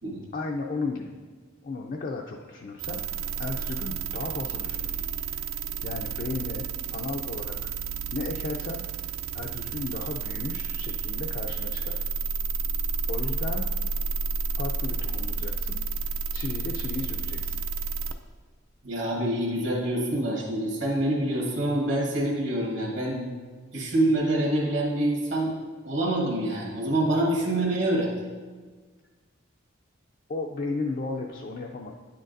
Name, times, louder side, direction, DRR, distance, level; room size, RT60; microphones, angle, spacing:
voice 1, 0.3-1.1 1.6-7.7 8.1-8.8 9.3-12.0 13.1-13.7 14.6-15.8 16.3-17.6 30.3-31.9, left 3 dB, 40° left, 1 dB, 0.4 m, -35 dB
sound 1, 2.8-18.1, right 4 dB, 80° right, 0.4 m, -31 dB
voice 2, 18.8-23.2 23.7-25.5 25.8-28.1, right 1 dB, 65° right, -3 dB, 1.5 m, -26 dB
9.5 x 6.4 x 2.6 m, 1.4 s
head